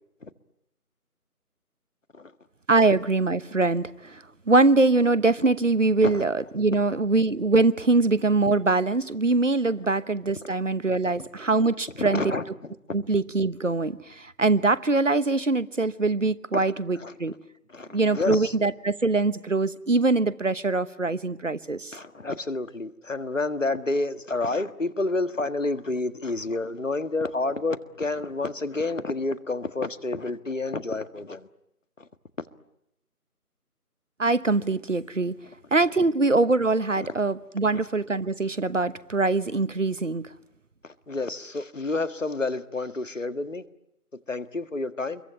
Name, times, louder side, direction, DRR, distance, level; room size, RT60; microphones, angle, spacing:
voice 1, 2.7-4.1 4.5-12.3 12.9-17.3 17.9-21.9 34.2-35.3 35.7-40.3, right 3 dB, 55° right, 1.2 m, -23 dB
voice 2, 11.9-12.7 16.5-17.1 17.7-18.5 21.9-31.5 32.0-32.1 37.0-37.1 40.8-43.6 44.3-45.2, left 2 dB, 55° left, 1.8 m, -29 dB
28.0 x 23.0 x 9.1 m
figure-of-eight pair, 165°, 46 cm